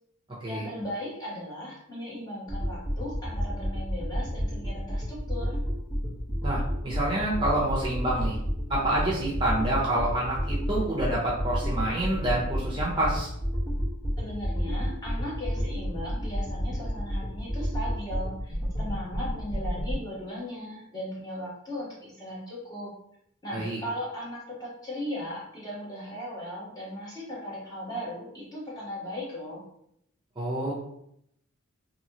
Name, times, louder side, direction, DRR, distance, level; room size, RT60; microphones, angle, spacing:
voice 1, 0.5-5.6 14.2-22.9 23.4-29.6, left 1 dB, 20° left, -7 dB, 1.1 m, -37 dB
sound 1, 2.5-19.9, equal, 60° left, 1.4 m, -31 dB
voice 2, 6.4-8.4 8.7-13.3 23.5-23.8 30.4-30.7, right 1 dB, 20° right, -5 dB, 0.6 m, -27 dB
3.0 x 2.7 x 2.8 m, 0.74 s
head